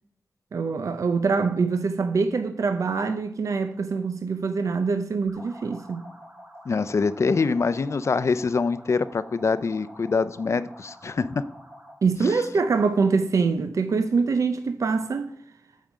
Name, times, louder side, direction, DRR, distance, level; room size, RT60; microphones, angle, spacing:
voice 1, 0.5-6.0 12.0-15.3, right 4 dB, 80° right, 0.5 m, -24 dB
sound 1, 5.3-12.1, equal, 45° right, 2.7 m, -47 dB
voice 2, 6.7-11.4 12.2-12.4, left 4 dB, 60° left, 0.5 m, -24 dB
9.1 x 6.4 x 4.9 m
wide cardioid pair, 90°, 5 cm